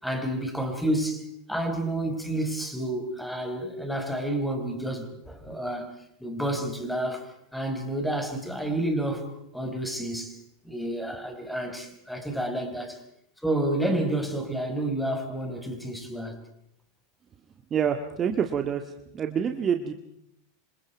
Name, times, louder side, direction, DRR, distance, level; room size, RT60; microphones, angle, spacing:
voice 1, 0.0-13.0 13.4-16.4, right 1 dB, ahead, 5.1 m, -30 dB
voice 2, 17.7-18.8 19.1-19.9, right 8 dB, 30° right, 1.9 m, -26 dB
27.0 x 26.5 x 4.7 m
hypercardioid pair, 90°, 0 cm